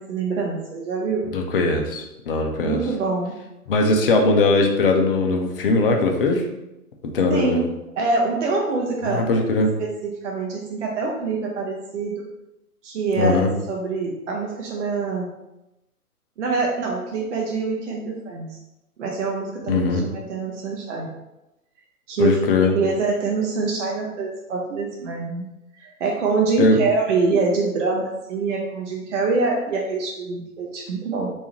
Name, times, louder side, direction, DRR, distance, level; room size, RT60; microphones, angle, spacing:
voice 1, 0.0-1.2 2.6-3.4 7.3-7.7 8.0-9.2 9.8-12.3 12.8-15.3 16.4-18.5 19.0-21.1 22.1-22.4 22.7-25.5 25.8-31.3, right 4 dB, 55° right, -1 dB, 0.7 m, -25 dB
voice 2, 1.3-2.8 3.7-6.5 7.1-7.6 9.0-9.7 13.2-13.5 19.7-20.0 22.2-22.7 26.6-26.8, left 3 dB, 40° left, 3 dB, 0.5 m, -20 dB
3.4 x 2.6 x 2.8 m, 0.93 s
figure-of-eight pair, 115°, 45 cm